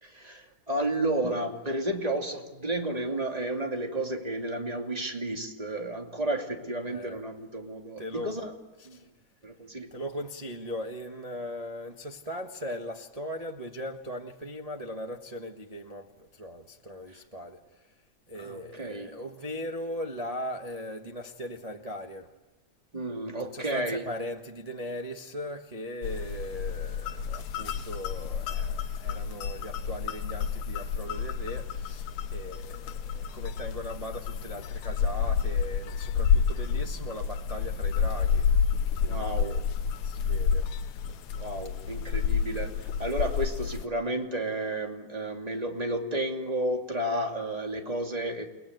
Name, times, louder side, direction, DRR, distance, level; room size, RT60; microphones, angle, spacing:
voice 1, 0.0-8.5 8.8-9.0 9.4-9.9 18.4-19.1 22.9-24.1 39.0-39.6 41.4-48.4, right 1 dB, 15° right, 2 dB, 2.3 m, -32 dB
voice 2, 6.8-7.2 8.0-8.3 8.9-9.0 9.9-17.6 18.3-22.3 23.5-38.6 39.0-39.7 40.0-40.7, equal, 75° right, 2 dB, 0.3 m, -39 dB
sound 1, 26.0-43.8, left 6 dB, 75° left, 2.3 m, -29 dB
29.5 x 19.0 x 9.3 m, 1.2 s
omnidirectional pair, 3.3 m